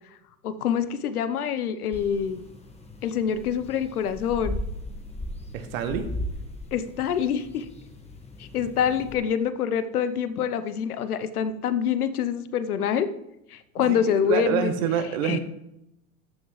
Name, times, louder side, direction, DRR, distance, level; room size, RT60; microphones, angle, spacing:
voice 1, 0.4-2.4 3.0-4.6 6.7-7.7 8.4-13.1 13.5-14.7 15.2-15.4, left 8 dB, 85° left, 12 dB, 0.9 m, -26 dB
sound 1, 1.9-9.1, left 1 dB, 15° left, 1.6 m, -37 dB
voice 2, 5.5-6.1 13.8-15.4, right 8 dB, 65° right, 8 dB, 1.4 m, -27 dB
13.5 x 6.2 x 3.2 m, 0.83 s
hypercardioid pair, 95°, 44 cm